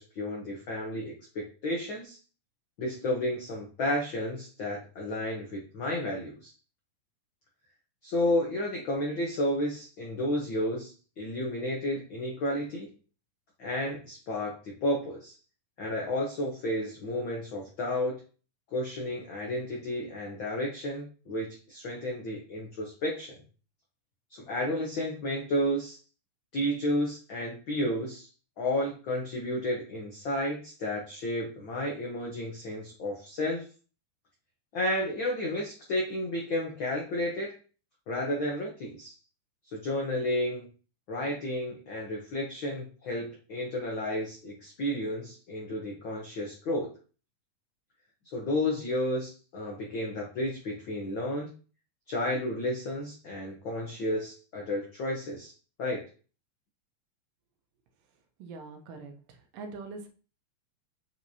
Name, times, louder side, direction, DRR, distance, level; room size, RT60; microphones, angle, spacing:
voice 1, 0.0-2.2 2.8-6.5 8.0-12.9 13.6-15.3 15.8-18.2 18.7-23.4 24.3-26.0 26.5-28.3 28.6-33.7 34.7-37.5 38.1-39.1 39.7-40.7 41.1-46.9 48.3-51.5 52.1-55.5 55.8-56.0, left 1 dB, 80° left, -1 dB, 1.1 m, -32 dB
voice 2, 58.4-59.1 59.5-60.1, right 4 dB, 80° right, 5 dB, 2.5 m, -42 dB
7.7 x 4.5 x 2.8 m, 0.38 s
omnidirectional pair, 3.9 m